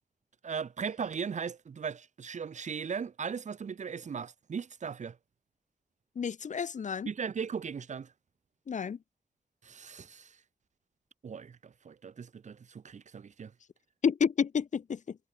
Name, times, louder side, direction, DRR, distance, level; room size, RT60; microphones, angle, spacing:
voice 1, 0.4-5.2 7.1-8.1 9.6-10.4 11.2-13.5, right 6 dB, 75° right, 0.7 m, -38 dB
voice 2, 6.2-7.1 8.7-9.0 14.0-15.2, left 6 dB, 80° left, 0.7 m, -30 dB
wide cardioid pair, 115°, 13 cm